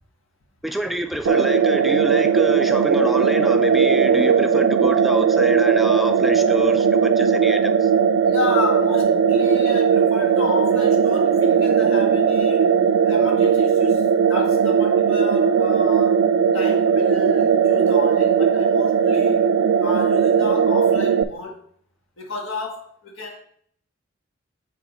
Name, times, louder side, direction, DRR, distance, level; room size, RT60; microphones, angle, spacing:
voice 1, 0.6-7.9, equal, ahead, 6 dB, 0.4 m, -27 dB
sound 1, 1.3-21.2, right 6 dB, 85° right, 0.3 m, -18 dB
voice 2, 8.3-12.6 13.0-16.2 16.5-19.5 19.8-21.6 22.2-23.4, left 3 dB, 85° left, 1 dB, 1.6 m, -32 dB
7.0 x 3.7 x 4.3 m, 0.63 s
head